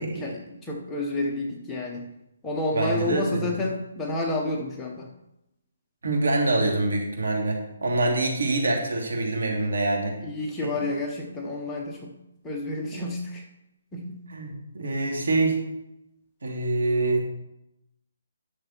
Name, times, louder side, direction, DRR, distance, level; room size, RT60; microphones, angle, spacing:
voice 1, 0.0-2.1 2.4-5.1 10.2-12.1 12.4-13.4 13.9-14.2, left 2 dB, 5° left, -2 dB, 0.9 m, -30 dB
voice 2, 2.7-3.5 6.0-10.2 10.6-10.7 12.9-13.0 14.3-15.6 16.4-17.2, right 2 dB, 75° right, 1 dB, 2.7 m, -25 dB
10.5 x 6.6 x 4.4 m, 0.88 s
hypercardioid pair, 175°, 0 cm